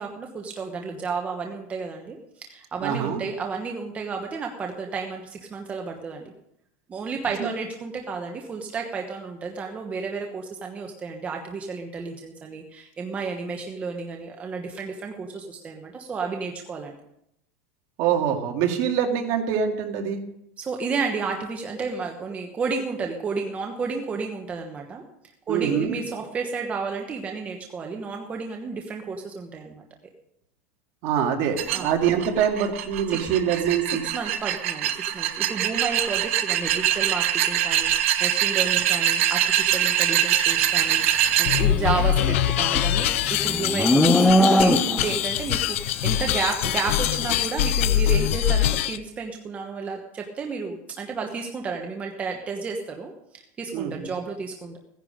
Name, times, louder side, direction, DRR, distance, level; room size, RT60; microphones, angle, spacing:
voice 1, 0.0-6.3 6.9-16.9 20.6-25.0 25.5-29.8 31.7-31.9 33.1-33.3 34.1-43.1 43.4-54.8, right 4 dB, 20° right, 2 dB, 1.2 m, -32 dB
voice 2, 2.8-3.2 7.4-7.5 18.0-20.2 25.5-26.0 31.0-34.0 53.7-54.1, right 8 dB, 50° right, 3 dB, 2.1 m, -24 dB
sound 1, 31.6-41.6, right 11 dB, 80° right, 1.3 m, -23 dB
sound 2, 41.4-49.0, left 11 dB, 75° left, 0.7 m, -23 dB
Livestock farm animals working animals, 42.0-45.2, left 1 dB, 5° left, 0.7 m, -21 dB
16.0 x 10.5 x 5.1 m, 0.79 s
supercardioid pair, 150°, 7 cm